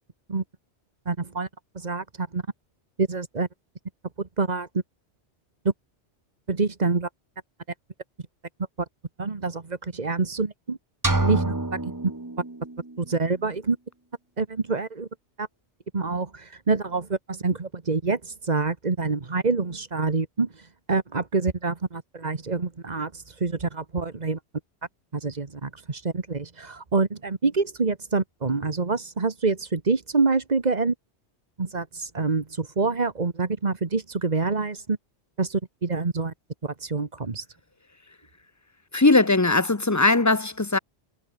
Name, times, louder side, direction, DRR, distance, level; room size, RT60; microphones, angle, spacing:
voice 1, 1.0-1.5 1.7-2.4 3.0-3.5 4.2-4.7 5.6-5.7 6.5-7.1 9.2-10.8 11.2-11.9 13.0-13.8 14.4-15.1 15.4-15.5 15.9-24.4 25.1-30.9 31.6-35.0 35.4-36.3 36.6-37.5, right 4 dB, 40° right, 1.6 m, -26 dB
sound 1, 11.0-13.0, right 2 dB, 15° right, 1.3 m, -27 dB
voice 2, 38.9-40.8, left 2 dB, 15° left, 0.8 m, -19 dB
omnidirectional pair, 1.1 m